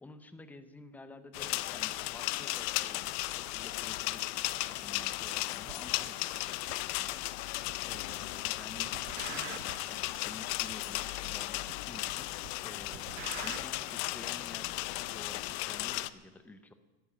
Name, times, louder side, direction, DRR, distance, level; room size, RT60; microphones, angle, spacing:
voice 1, 0.0-3.1 3.4-4.4 4.7-16.7, left 2 dB, 5° left, 10 dB, 0.6 m, -51 dB
sound 1, 1.3-16.1, left 18 dB, 65° left, 0.7 m, -36 dB
sound 2, 5.7-5.8 6.7-6.8 7.7-8.2 8.4-9.9 10.7-10.8 11.7-12.2 12.4-13.7, right 16 dB, 70° right, 0.8 m, -45 dB
14.0 x 12.5 x 8.4 m, 1.2 s
cardioid pair, 180°, 37 cm